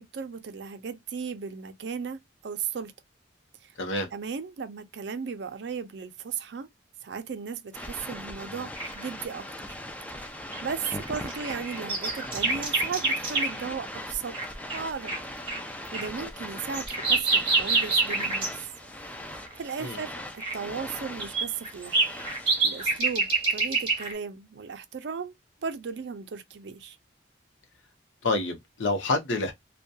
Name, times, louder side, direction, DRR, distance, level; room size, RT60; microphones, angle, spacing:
voice 1, 0.0-2.9 3.6-3.7 4.1-6.7 7.0-9.8 10.2-10.3 10.6-14.4 14.7-15.1 15.9-18.5 19.6-22.0 22.6-25.3 25.6-27.0, right 6 dB, 65° right, 0.4 m, -36 dB
sound 1, 7.7-23.0, left 1 dB, 10° left, 0.3 m, -40 dB
sound 2, 8.7-9.0 10.5-13.7 14.3-14.4 14.7-14.8 15.1-15.2 15.5-15.6 15.9-18.5 19.3-19.5 20.4-20.5 21.2-24.1, right 3 dB, 30° right, 1.0 m, -27 dB
voice 2, 28.2-29.5, left 2 dB, 85° left, 0.7 m, -27 dB
2.6 x 2.2 x 2.2 m
head